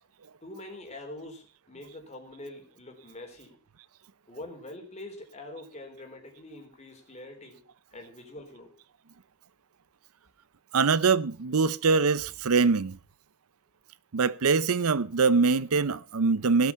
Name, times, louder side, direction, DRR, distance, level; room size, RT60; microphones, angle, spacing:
voice 1, 0.4-3.6 4.3-7.7 7.9-8.7, left 1 dB, 30° left, 3.5 m, -44 dB
voice 2, 10.7-13.0 14.1-16.7, right 4 dB, 80° right, 0.6 m, -23 dB
17.5 x 8.3 x 5.8 m
head